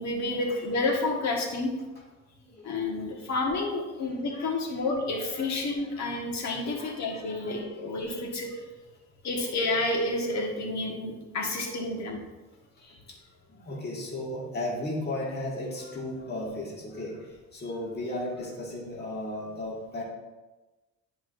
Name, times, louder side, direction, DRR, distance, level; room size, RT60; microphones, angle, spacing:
voice 1, 0.0-1.7 2.6-8.6 9.2-12.2, left 2 dB, 65° left, 0 dB, 1.6 m, -30 dB
voice 2, 2.3-3.1 4.0-4.9 5.2-6.2 6.7-8.0 11.4-11.9 12.8-20.0, left 1 dB, 35° left, -4 dB, 1.9 m, -37 dB
10.5 x 5.0 x 2.6 m, 1.2 s
cardioid pair, 90°, 30 cm